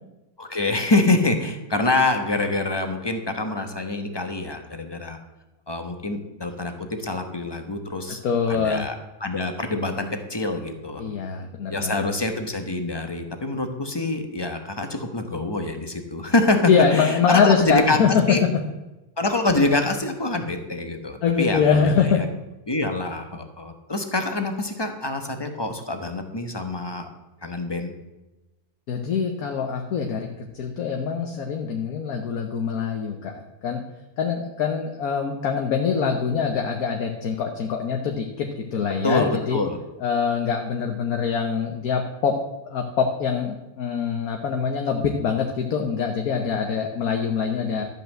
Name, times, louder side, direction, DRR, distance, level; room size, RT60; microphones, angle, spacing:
voice 1, 0.4-5.2 5.7-8.2 8.5-11.1 11.7-18.4 19.2-22.3 22.7-27.1 27.4-27.9 39.0-39.8, left 2 dB, 20° left, 6 dB, 1.0 m, -25 dB
voice 2, 8.2-8.9 11.0-12.1 16.7-18.6 21.2-22.2 28.9-33.8 34.2-39.6 40.0-42.3 42.6-47.8, left 6 dB, 65° left, 3 dB, 1.4 m, -24 dB
13.0 x 5.5 x 7.5 m, 1.0 s
omnidirectional pair, 1.8 m